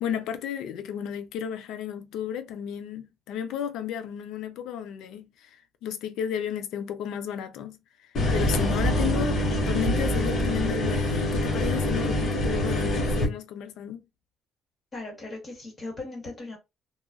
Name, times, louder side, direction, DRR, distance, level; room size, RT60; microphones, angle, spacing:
voice 1, 0.0-14.0, left 9 dB, 80° left, 0.4 m, -33 dB
sound 1, 8.1-13.2, left 1 dB, 40° left, 0.9 m, -25 dB
voice 2, 14.9-16.6, left 2 dB, 20° left, 1.5 m, -38 dB
2.9 x 2.2 x 2.4 m
cardioid pair, 160°, 0 cm